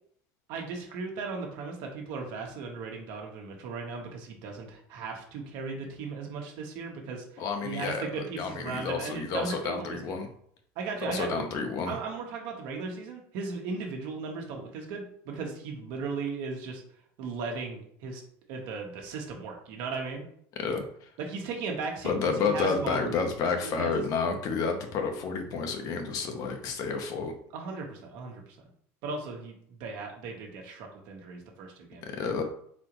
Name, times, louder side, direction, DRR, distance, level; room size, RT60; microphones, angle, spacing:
voice 1, 0.5-10.2 10.7-11.4 11.9-16.8 17.2-18.2 18.5-20.2 21.2-23.2 23.6-24.0 27.5-28.6 29.0-32.0, right 4 dB, 70° right, 1 dB, 1.2 m, -37 dB
voice 2, 7.4-10.3 11.0-12.0 20.6-21.1 22.0-27.3 32.0-32.4, left 5 dB, 55° left, 5 dB, 0.9 m, -30 dB
4.1 x 3.8 x 3.0 m, 0.64 s
supercardioid pair, 125°, 8 cm